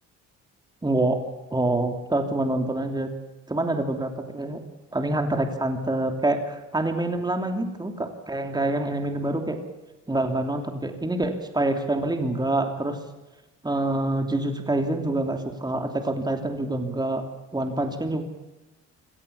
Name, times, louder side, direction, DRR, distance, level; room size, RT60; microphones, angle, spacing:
voice 1, 0.8-1.2 1.5-3.1 3.5-4.6 4.9-9.6 10.1-13.0 13.6-17.2 17.5-18.2, right 2 dB, 15° right, 5 dB, 3.0 m, -26 dB
24.5 x 18.0 x 7.1 m, 1.1 s
cardioid pair, 90°, 30 cm